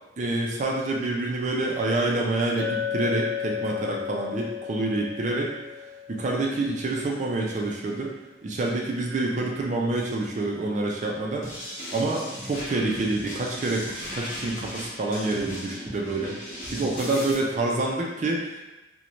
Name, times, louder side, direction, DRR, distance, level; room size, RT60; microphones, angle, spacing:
voice 1, 0.2-5.5 6.1-8.1 8.4-11.5 11.9-16.4 16.7-18.6, right 2 dB, 45° right, -1 dB, 0.4 m, -27 dB
Chink clink, 2.6-6.8, left 8 dB, 65° left, 0.3 m, -33 dB
sound 1, 11.4-17.3, left 1 dB, 45° left, 0.8 m, -37 dB
3.0 x 2.1 x 2.5 m, 1.1 s
head